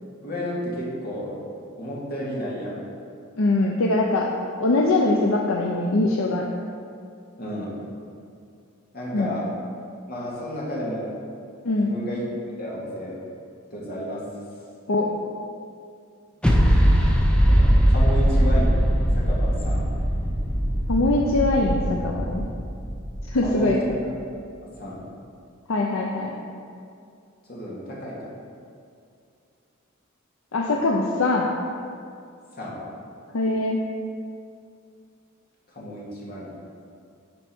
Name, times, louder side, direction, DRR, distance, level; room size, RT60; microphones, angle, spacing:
voice 1, 0.2-1.3 1.8-2.8 7.4-7.8 8.9-9.5 10.1-11.2 11.8-13.2 13.7-14.2 17.5-18.7 19.1-19.9 23.4-23.7 24.6-25.0 27.5-28.3 32.5-32.8 35.7-36.5, equal, 50° left, -6 dB, 2.1 m, -32 dB
voice 2, 3.4-4.3 4.6-6.4 9.1-9.4 11.6-11.9 14.9-15.1 20.9-22.4 23.2-23.8 25.7-26.3 30.5-31.5 33.3-33.8, left 2 dB, 70° left, -1 dB, 0.6 m, -22 dB
sound 1, 16.4-24.0, equal, 5° left, 0.6 m, -21 dB
10.5 x 4.5 x 4.4 m, 2.4 s
head